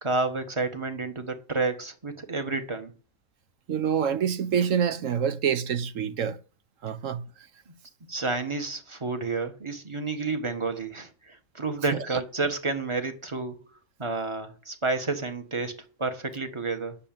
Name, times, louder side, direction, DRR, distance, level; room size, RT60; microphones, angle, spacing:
voice 1, 0.0-2.9 8.1-13.6 14.0-17.0, right 3 dB, 20° right, 1.5 m, -30 dB
voice 2, 3.7-6.4 6.8-7.2 11.9-12.2, right 8 dB, 65° right, 1.2 m, -26 dB
9.9 x 6.9 x 9.0 m
omnidirectional pair, 1.5 m